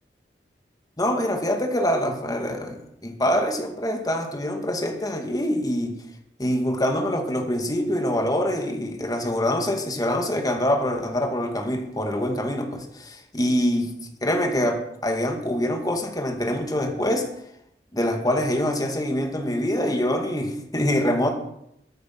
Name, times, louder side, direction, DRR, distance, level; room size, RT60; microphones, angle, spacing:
voice 1, 1.0-6.0 6.4-13.9 14.2-17.3 17.9-21.3, left 1 dB, 20° left, 2.1 m, -25 dB
22.0 x 8.6 x 6.0 m
head